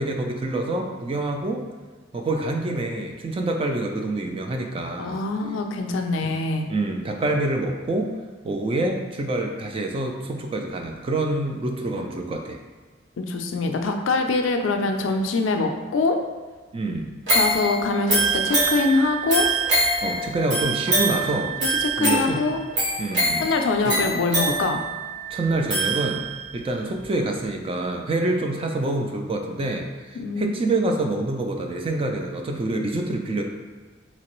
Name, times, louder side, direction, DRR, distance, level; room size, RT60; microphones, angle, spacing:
voice 1, 0.0-1.6 2.1-5.2 6.2-6.3 6.7-8.1 8.4-12.6 16.7-17.1 20.0-21.5 22.0-22.4 23.0-23.5 23.8-24.0 25.3-26.2 26.5-33.4, right 2 dB, 30° right, 3 dB, 0.3 m, -26 dB
voice 2, 5.0-6.7 13.2-16.2 17.3-19.5 21.6-22.6 23.4-24.8 30.2-30.5, left 3 dB, 80° left, 5 dB, 0.4 m, -24 dB
sound 1, 17.3-26.5 27.0-27.1, right 2 dB, 80° right, 1.4 m, -24 dB
3.2 x 2.9 x 3.0 m, 1.4 s
head